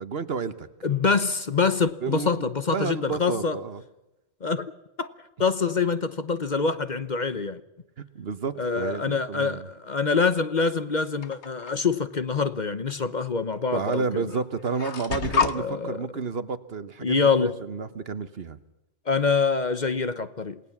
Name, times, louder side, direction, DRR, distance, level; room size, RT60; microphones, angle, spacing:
voice 1, 0.0-0.7 2.0-3.8 8.1-9.7 13.7-18.6, right 5 dB, 60° right, 1.3 m, -31 dB
voice 2, 0.8-3.6 4.4-4.7 5.0-5.1 5.4-7.6 8.6-14.2 15.5-16.1 17.0-17.5 19.1-20.6, left 5 dB, 40° left, 1.0 m, -25 dB
sound 1, 11.2-11.7 12.9-13.0 13.9-14.0 14.3-15.6, left 6 dB, 70° left, 1.4 m, -28 dB
28.0 x 18.5 x 7.2 m
omnidirectional pair, 1.2 m